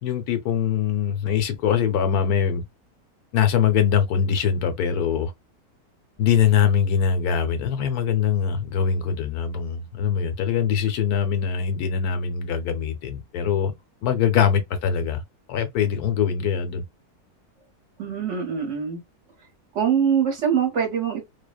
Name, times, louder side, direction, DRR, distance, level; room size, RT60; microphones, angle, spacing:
voice 1, 0.0-2.6 3.3-5.3 6.2-13.7 14.0-15.2 15.5-16.8, left 7 dB, 80° left, 1.2 m, -22 dB
voice 2, 18.0-19.0 19.7-21.3, right 7 dB, 55° right, 1.1 m, -23 dB
2.8 x 2.0 x 2.3 m
omnidirectional pair, 1.6 m